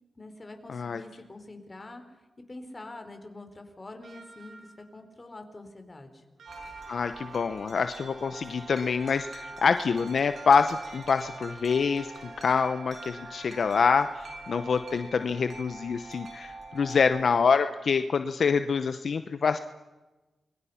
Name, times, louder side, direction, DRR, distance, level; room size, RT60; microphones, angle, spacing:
voice 1, 0.2-2.2 2.5-6.2, left 2 dB, 30° left, 6 dB, 4.2 m, -45 dB
voice 2, 0.7-1.0 6.9-12.1 12.4-19.6, left 5 dB, 70° left, 10 dB, 0.9 m, -26 dB
sound 1, 4.0-5.0 6.4-9.0 10.3-14.8 16.1-16.2, right 3 dB, 80° right, 7.6 m, -53 dB
Wind chime, 6.5-17.3, right 2 dB, 65° right, 5.9 m, -44 dB
28.5 x 23.0 x 5.8 m, 1.1 s
cardioid pair, 60°, 0 cm